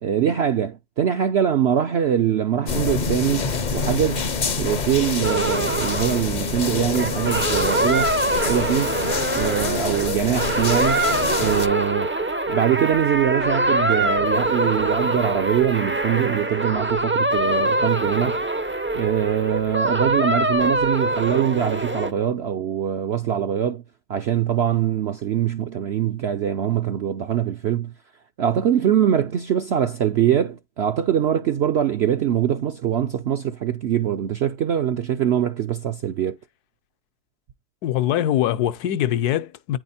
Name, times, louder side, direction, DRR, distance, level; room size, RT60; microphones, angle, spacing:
voice 1, 0.0-4.3 4.6-8.2 8.5-9.0 9.3-11.1 11.3-12.1 12.5-18.4 18.9-23.8 24.1-27.9 28.4-36.4, right 9 dB, 70° right, 0.6 m, -23 dB
sound 1, 2.7-11.7, left 5 dB, 45° left, 0.6 m, -26 dB
sound 2, 5.2-22.1, right 2 dB, 20° right, 0.3 m, -24 dB
voice 2, 37.8-39.8, left 12 dB, 75° left, 1.2 m, -22 dB
9.4 x 4.8 x 4.2 m
omnidirectional pair, 1.7 m